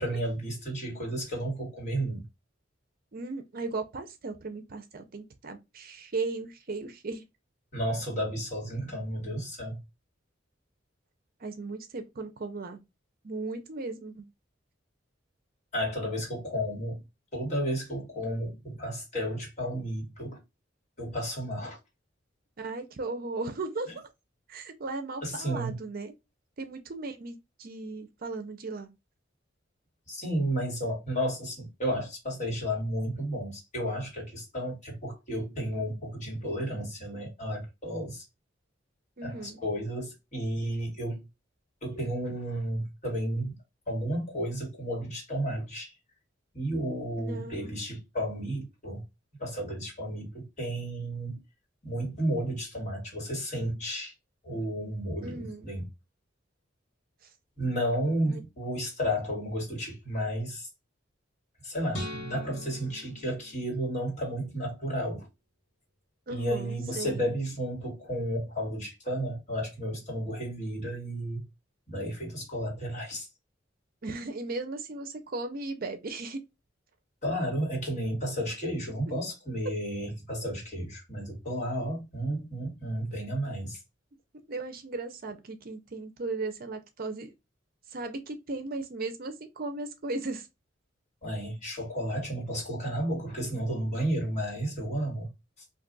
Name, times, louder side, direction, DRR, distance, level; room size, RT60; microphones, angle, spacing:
voice 1, 0.0-2.2 7.7-9.8 15.7-17.0 17.3-20.4 21.0-21.8 25.2-25.8 30.1-38.2 39.2-41.2 41.8-43.6 43.9-45.9 46.5-49.0 49.4-51.4 51.8-54.1 54.4-55.9 57.6-60.7 61.6-65.3 66.3-71.4 71.9-73.3 77.2-83.8 91.2-95.3, equal, 40° left, 1.7 m, -32 dB
voice 2, 3.1-7.2 11.4-12.8 13.2-14.3 22.6-23.9 24.5-26.1 26.6-28.9 39.2-39.6 47.2-47.8 55.2-55.7 58.3-58.4 66.3-67.3 74.0-76.4 84.5-87.3 87.9-90.5, right 3 dB, 50° right, 0.6 m, -36 dB
sound 1, 61.9-64.3, left 1 dB, 75° left, 1.4 m, -41 dB
2.6 x 2.4 x 3.8 m
head